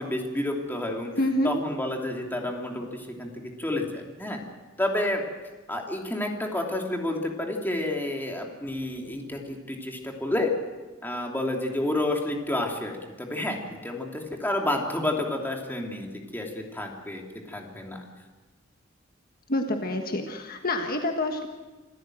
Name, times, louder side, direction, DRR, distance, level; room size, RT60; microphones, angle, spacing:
voice 1, 0.0-1.1 1.4-3.3 3.6-4.4 4.8-5.2 5.7-10.5 11.0-17.2 17.5-18.0, left 1 dB, 10° left, 1 dB, 3.0 m, -30 dB
voice 2, 1.2-1.5 19.5-21.5, left 1 dB, 50° left, 4 dB, 1.5 m, -27 dB
27.0 x 14.5 x 7.7 m, 1.2 s
head